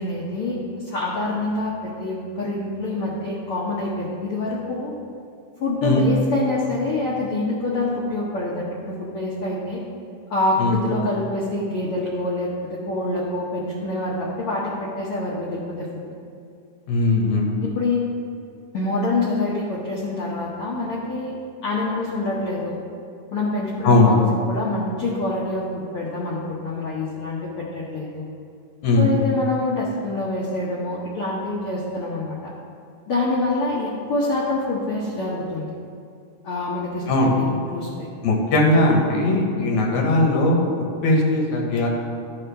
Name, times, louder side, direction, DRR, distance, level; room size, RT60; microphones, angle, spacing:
voice 1, 0.0-4.9 5.6-9.8 10.3-16.0 17.6-18.0 18.7-21.3 21.6-22.8 23.3-24.2 24.5-28.2 28.9-32.5 33.1-35.7 36.4-38.1, left 2 dB, 85° left, -5 dB, 1.2 m, -26 dB
voice 2, 16.9-17.6 23.8-24.2 28.8-29.1 37.1-37.4 38.2-40.6 41.0-41.9, left 2 dB, 70° left, -1 dB, 2.2 m, -18 dB
12.0 x 4.9 x 3.4 m, 2.4 s
omnidirectional pair, 3.8 m